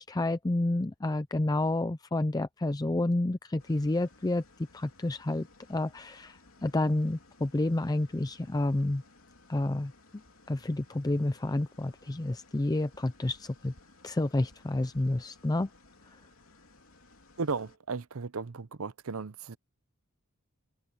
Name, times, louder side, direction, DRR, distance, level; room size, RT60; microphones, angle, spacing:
voice 1, 0.0-4.4 4.7-9.0 9.5-9.9 10.5-13.7 14.0-15.7, left 2 dB, 20° left, 0.5 m, -29 dB
sound 1, 3.6-17.8, left 2 dB, 70° left, 3.2 m, -59 dB
voice 2, 17.4-19.6, right 4 dB, 70° right, 0.7 m, -35 dB
head